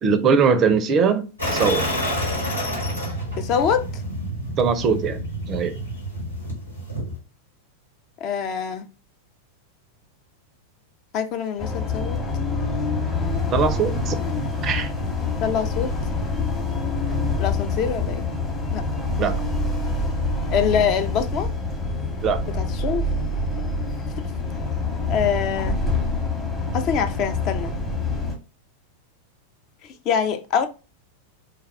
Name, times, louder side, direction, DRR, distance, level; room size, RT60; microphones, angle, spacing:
voice 1, 0.0-1.9 4.6-5.2 5.5-5.7 13.5-14.1 14.6-14.9 19.2-19.4 22.2-22.4, right 5 dB, 30° right, 0.4 m, -21 dB
sound 1, 1.4-7.2, equal, 85° left, 1.3 m, -28 dB
voice 2, 3.4-3.8 8.2-8.9 11.1-12.2 15.4-15.9 17.4-18.2 18.7-18.8 20.5-21.5 22.5-23.1 25.1-25.8 26.7-27.7 29.8-30.7, left 7 dB, 40° left, 0.4 m, -24 dB
sound 2, 11.6-28.4, left 3 dB, 15° left, 0.9 m, -26 dB
3.4 x 2.2 x 3.3 m
figure-of-eight pair, 90°, 0 cm